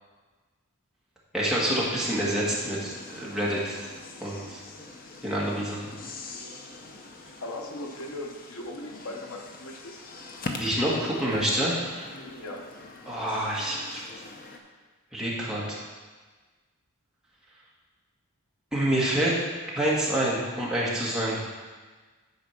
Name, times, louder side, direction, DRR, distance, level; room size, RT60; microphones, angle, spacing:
voice 1, 1.3-3.8 4.2-4.6 5.2-5.8 10.5-12.1 13.1-14.0 15.1-15.8 18.7-19.3 19.7-21.4, right 1 dB, 5° right, -6 dB, 1.6 m, -27 dB
sound 1, 2.2-14.6, left 3 dB, 40° left, 0.7 m, -43 dB
voice 2, 7.4-10.0 12.4-12.7, left 1 dB, 75° left, 2 dB, 0.9 m, -38 dB
9.5 x 4.2 x 5.8 m, 1.4 s
head